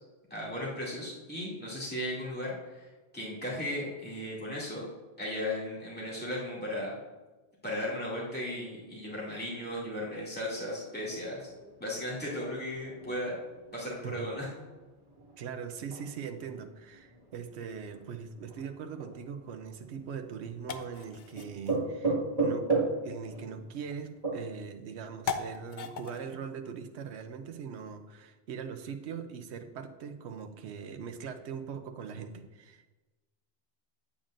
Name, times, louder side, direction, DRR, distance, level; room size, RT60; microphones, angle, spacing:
voice 1, 0.3-2.9 3.1-4.8 5.2-7.0 7.6-11.5 11.8-13.4 13.7-14.5, left 1 dB, 10° left, -7 dB, 2.4 m, -36 dB
sound 1, 11.1-24.4, right 3 dB, 35° right, 1.9 m, -36 dB
voice 2, 15.4-22.7 23.0-32.9, right 6 dB, 80° right, 7 dB, 0.9 m, -41 dB
sound 2, 19.4-28.1, left 6 dB, 55° left, 0.6 m, -44 dB
8.8 x 8.6 x 2.5 m, 1.2 s
omnidirectional pair, 1.1 m